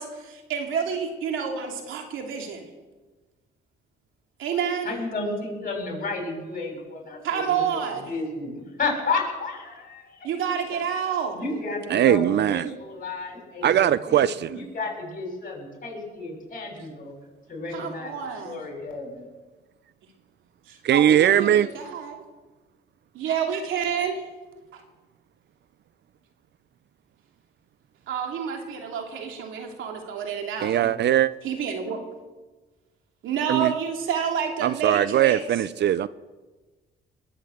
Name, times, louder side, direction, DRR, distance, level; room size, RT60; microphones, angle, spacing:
voice 1, 0.0-2.7 4.4-4.9 7.2-8.1 10.2-11.4 17.7-18.6 20.7-22.2 23.1-24.2 24.7-24.8 28.1-30.8 31.4-32.0 33.2-35.6, right 7 dB, 85° right, 2 dB, 2.8 m, -29 dB
voice 2, 4.8-7.8 8.1-10.3 10.7-10.8 11.3-17.1 17.5-18.1 18.4-19.3 30.6-31.1, left 3 dB, 45° left, 0 dB, 7.1 m, -32 dB
voice 3, 11.9-12.7 13.6-14.3 20.8-21.7 30.6-31.3 33.5-33.7 34.6-36.1, right 11 dB, 60° right, 17 dB, 0.5 m, -20 dB
21.0 x 7.9 x 7.8 m, 1.2 s
cardioid pair, 90°, 20 cm